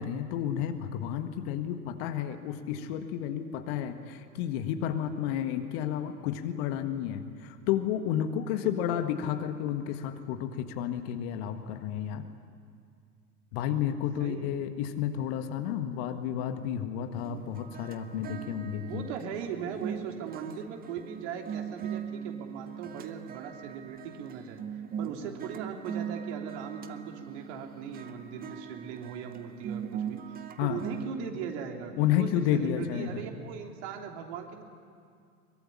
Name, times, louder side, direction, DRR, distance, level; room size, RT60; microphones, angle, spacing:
voice 1, 0.0-12.2 13.5-19.1 30.6-30.8 32.0-33.2, left 10 dB, 40° left, 8 dB, 1.7 m, -31 dB
voice 2, 8.5-9.0 14.2-14.5 18.8-34.6, right 7 dB, 45° right, 3 dB, 3.2 m, -39 dB
sound 1, 17.2-31.1, right 8 dB, 20° right, 1.0 m, -40 dB
23.0 x 22.0 x 10.0 m, 2.3 s
figure-of-eight pair, 95°, 47 cm